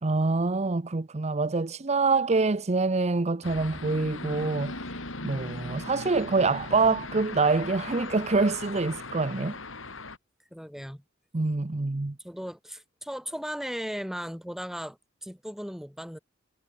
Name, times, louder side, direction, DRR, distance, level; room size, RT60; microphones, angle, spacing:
voice 1, 0.0-4.9 5.2-9.6 11.3-12.2, right 3 dB, 35° right, 0.7 m, -26 dB
sound 1, 3.4-10.2, left 3 dB, 90° left, 8.0 m, -38 dB
voice 2, 5.3-5.8 10.5-11.0 12.2-16.2, equal, ahead, 5.5 m, -37 dB
head